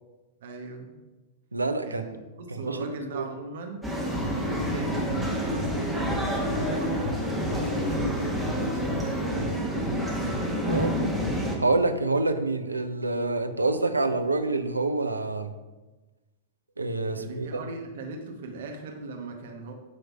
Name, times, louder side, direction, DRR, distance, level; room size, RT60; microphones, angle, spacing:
voice 1, 0.4-1.0 1.9-3.8 4.3-7.2 7.5-10.1 17.1-19.7, right 3 dB, 60° right, 2 dB, 0.9 m, -39 dB
voice 2, 1.5-2.0 2.5-3.2 10.7-11.0 11.6-15.5 16.8-17.6, right 2 dB, 85° right, 8 dB, 0.5 m, -27 dB
sound 1, 3.8-11.6, equal, 5° left, 1.5 m, -28 dB
8.4 x 3.3 x 5.9 m, 1.2 s
figure-of-eight pair, 100°, 0 cm